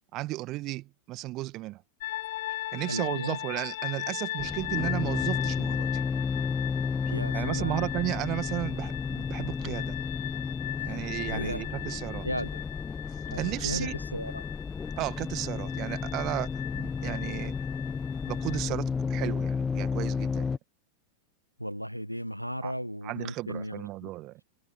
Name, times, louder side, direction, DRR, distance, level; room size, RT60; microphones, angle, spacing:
voice 1, 0.1-1.8 2.7-6.0 7.3-10.0 10.8-12.3 13.3-14.0 15.0-16.5 16.7-17.5 18.2-20.6 22.6-22.7 23.0-24.4, right 18 dB, 40° right, 1.9 m, -34 dB
sound 1, 2.0-18.6, left 16 dB, 55° left, 1.3 m, -39 dB
voice 2, 2.9-3.4 7.1-7.8 10.8-10.9 11.3-11.6 12.2-12.6 13.2-14.4 21.6-24.1, equal, 90° right, 1.6 m, -35 dB
sound 2, 4.4-20.6, left 5 dB, 15° left, 1.0 m, -32 dB
figure-of-eight pair, 90°, 0 cm